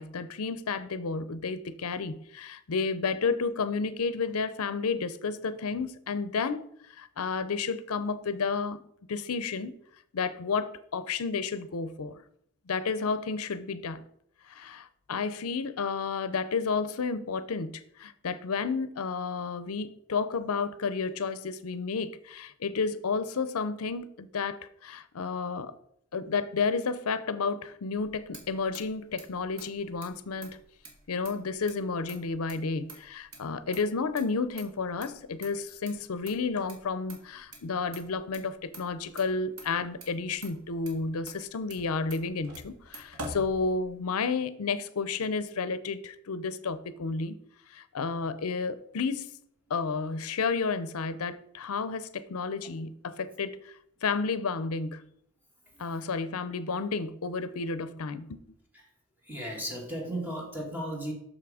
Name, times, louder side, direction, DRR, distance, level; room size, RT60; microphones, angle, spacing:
voice 1, 0.0-6.6 6.9-8.8 9.1-9.7 10.1-12.2 12.7-14.0 14.5-25.7 26.1-30.6 31.1-47.4 47.7-49.3 49.7-53.7 54.0-55.1 55.8-58.4, left 4 dB, 70° left, 0.6 m, -31 dB
Motor vehicle (road), 28.0-44.2, right 1 dB, 70° right, 1.8 m, -48 dB
voice 2, 59.2-61.1, right 1 dB, 10° right, 1.7 m, -35 dB
6.5 x 6.0 x 4.8 m
head